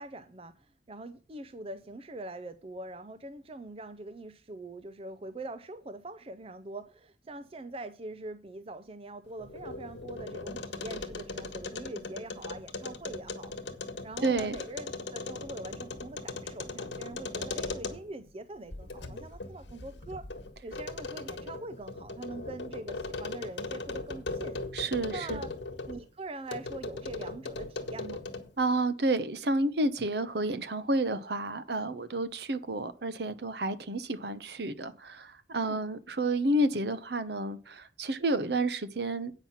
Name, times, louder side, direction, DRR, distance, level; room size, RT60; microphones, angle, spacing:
voice 1, 0.0-13.5 14.0-20.3 20.6-24.6 25.1-25.5 25.9-28.2 35.6-35.8, right 2 dB, 30° right, 0.5 m, -43 dB
sound 1, 9.3-18.2 18.7-26.0 26.5-28.6, left 3 dB, 70° left, 1.4 m, -39 dB
voice 2, 14.2-14.6 24.7-25.4 28.6-39.3, right 2 dB, 60° right, 0.9 m, -30 dB
8.9 x 5.8 x 7.2 m
head